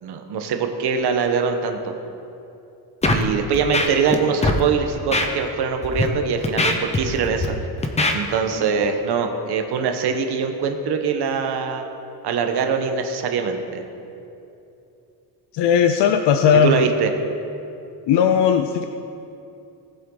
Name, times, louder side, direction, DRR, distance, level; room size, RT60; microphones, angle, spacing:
voice 1, 0.0-1.9 3.1-7.5 8.1-11.8 12.2-13.8 16.6-17.1, right 6 dB, 65° right, 5 dB, 1.2 m, -23 dB
Scratching (performance technique), 3.0-3.2 3.5-4.2 4.4-4.6 5.1-5.3 5.8-6.0 6.4-7.5 7.8-8.1, left 2 dB, 15° left, 0.8 m, -20 dB
voice 2, 15.5-16.9 18.1-18.8, left 7 dB, 75° left, 7 dB, 0.7 m, -17 dB
18.5 x 7.8 x 3.9 m, 2.7 s
cardioid pair, 150°, 42 cm